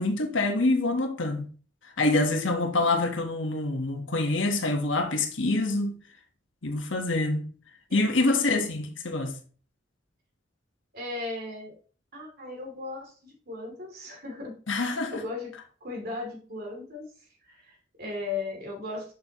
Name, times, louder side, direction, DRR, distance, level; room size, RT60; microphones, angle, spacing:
voice 1, 0.0-1.5 2.0-6.0 6.6-7.5 7.9-9.3 14.7-15.2, left 2 dB, 90° left, 1.3 m, -26 dB
voice 2, 10.9-11.7 12.1-14.5 14.8-15.5 15.8-17.1 17.4-19.1, left 3 dB, 55° right, 2.8 m, -37 dB
7.1 x 6.3 x 3.0 m
head